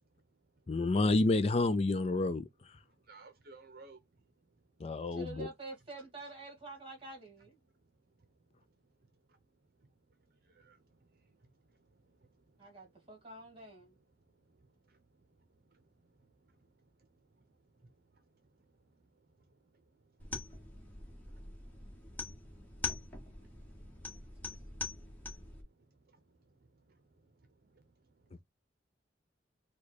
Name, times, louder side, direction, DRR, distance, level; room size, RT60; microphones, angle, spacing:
voice 1, 0.7-2.4 4.8-5.5, left 2 dB, 30° left, 0.4 m, -29 dB
voice 2, 2.8-5.0 7.7-8.6 9.0-9.4 9.8-13.1 13.9-28.4, right 3 dB, 50° right, 0.8 m, -65 dB
voice 3, 5.1-7.6 12.6-14.0 23.5-24.9, right 2 dB, 30° right, 2.2 m, -49 dB
sound 1, 20.2-25.6, left 3 dB, 10° left, 1.4 m, -43 dB
4.9 x 2.4 x 4.1 m
head